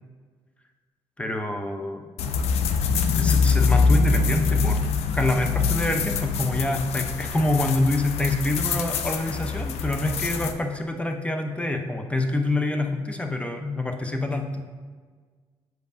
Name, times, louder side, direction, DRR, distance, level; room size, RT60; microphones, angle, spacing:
voice 1, 1.2-2.1 3.2-4.8 5.1-14.8, left 2 dB, 10° left, 5 dB, 0.7 m, -26 dB
sound 1, 2.2-10.5, left 4 dB, 75° left, 0.5 m, -24 dB
7.7 x 5.2 x 2.7 m, 1.5 s
supercardioid pair, 70°, 11 cm